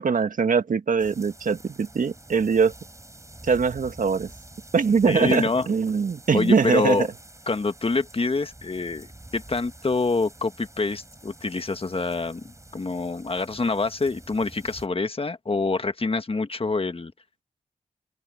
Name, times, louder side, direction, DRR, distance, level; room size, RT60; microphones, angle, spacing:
voice 1, 0.0-2.7 3.5-4.3 4.7-7.1, right 5 dB, 65° right, 1.6 m, -22 dB
sound 1, 1.0-14.9, right 1 dB, 20° right, 5.1 m, -47 dB
voice 2, 5.1-5.7 6.3-7.1 7.5-17.1, left 3 dB, 40° left, 1.6 m, -26 dB
open air
cardioid pair, 50°, 15 cm